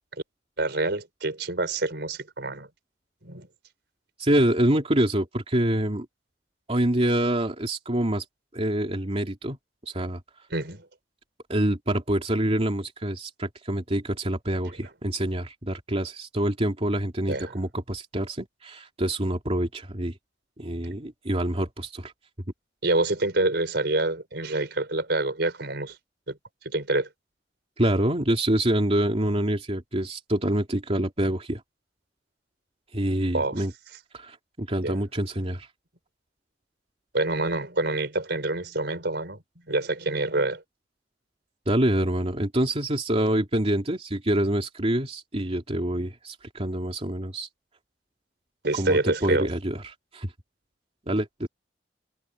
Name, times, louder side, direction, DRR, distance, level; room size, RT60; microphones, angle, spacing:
voice 1, 0.6-2.7 3.2-3.5 10.5-10.9 17.3-17.5 22.8-26.0 26.3-26.4 26.6-27.1 33.3-33.6 34.8-35.0 37.1-39.4 39.7-40.6 48.6-49.5, right 2 dB, 65° right, 5.2 m, -26 dB
voice 2, 4.2-6.1 6.7-8.2 8.5-9.6 9.9-10.2 11.5-20.1 20.6-22.1 27.8-31.6 32.9-33.7 34.1-35.7 41.7-47.5 48.7-50.3 51.1-51.5, right 1 dB, 35° right, 2.8 m, -26 dB
head